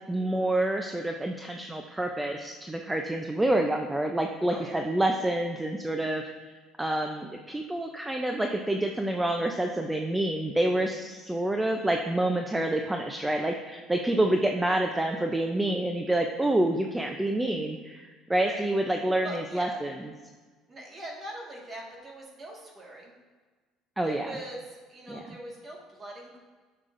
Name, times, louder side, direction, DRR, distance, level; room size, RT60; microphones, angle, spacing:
voice 1, 0.1-6.3 6.8-19.9 24.0-24.3 25.1-25.2, right 1 dB, 10° right, 3 dB, 0.4 m, -28 dB
voice 2, 4.4-4.8 18.4-18.7 19.2-19.8 20.7-23.1 24.0-26.4, right 1 dB, 30° right, -2 dB, 1.6 m, -42 dB
10.5 x 6.5 x 2.5 m, 1.4 s
cardioid pair, 135°, 0 cm